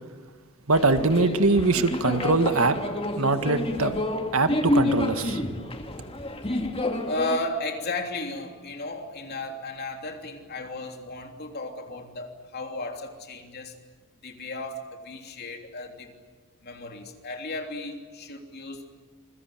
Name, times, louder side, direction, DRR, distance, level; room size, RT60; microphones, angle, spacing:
sound 1, 0.7-7.4, left 1 dB, 25° left, 2.1 m, -29 dB
voice 1, 0.7-2.8 3.2-3.9 4.3-5.4, right 3 dB, 80° right, 9 dB, 1.8 m, -22 dB
voice 2, 7.0-13.7 14.2-16.1 16.6-18.9, left 2 dB, 50° left, 4 dB, 3.2 m, -34 dB
27.5 x 22.5 x 9.1 m, 1.4 s
head